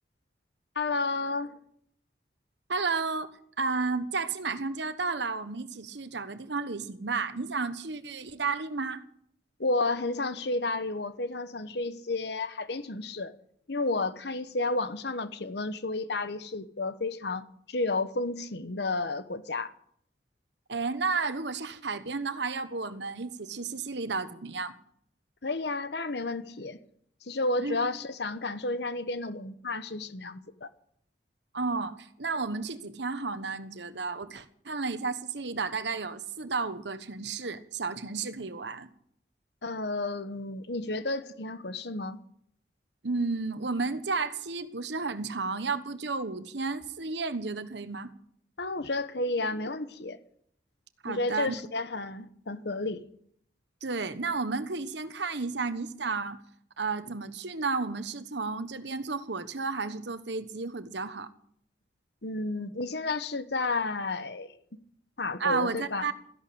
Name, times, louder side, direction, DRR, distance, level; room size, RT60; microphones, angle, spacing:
voice 1, 0.7-1.6 9.6-13.3 13.7-19.7 25.4-26.8 27.2-30.7 39.6-42.2 48.6-50.2 51.1-53.1 62.2-64.6 65.2-66.1, left 2 dB, 65° left, 1.1 m, -31 dB
voice 2, 2.7-3.3 3.6-9.0 20.7-24.8 27.6-27.8 31.5-38.9 43.0-48.1 51.0-51.5 53.8-56.4 56.8-61.3 65.4-66.1, right 4 dB, 70° right, 1.2 m, -32 dB
14.5 x 11.5 x 8.7 m
head